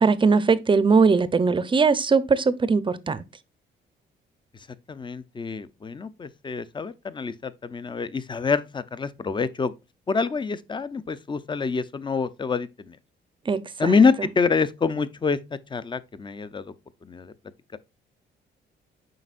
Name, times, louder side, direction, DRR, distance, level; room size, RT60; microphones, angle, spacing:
voice 1, 0.0-3.2 13.5-13.9, right 4 dB, 25° right, 0.6 m, -20 dB
voice 2, 4.9-9.7 10.1-13.0 13.8-15.4 15.7-16.7 17.0-17.3 17.7-17.8, left 5 dB, 25° left, 0.6 m, -26 dB
7.8 x 5.3 x 2.5 m
cardioid pair, 90°, 20 cm